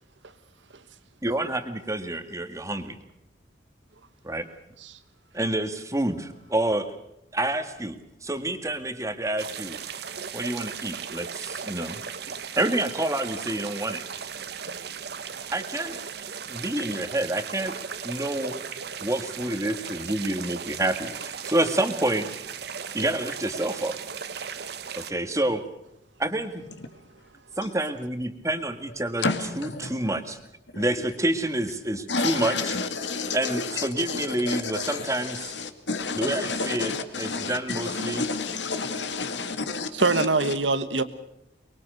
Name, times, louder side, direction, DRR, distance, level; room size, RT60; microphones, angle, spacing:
voice 1, 1.2-3.0 4.2-4.5 5.3-6.9 7.3-9.8 10.3-12.0 12.5-14.0 15.5-16.0 16.5-17.8 18.0-18.6 19.0-22.3 22.9-23.9 25.0-25.6 26.2-26.6 27.6-29.2 29.6-30.4 30.7-32.8 33.3-35.5 36.1-36.9 37.2-38.2, right 1 dB, 15° right, 1.8 m, -28 dB
sound 1, 9.4-25.1, right 6 dB, 60° right, 1.2 m, -37 dB
voice 2, 29.2-30.1 30.7-31.1 32.1-40.5, left 4 dB, 75° left, 2.3 m, -30 dB
voice 3, 39.9-41.0, right 3 dB, 85° right, 1.6 m, -23 dB
24.0 x 22.5 x 6.7 m
head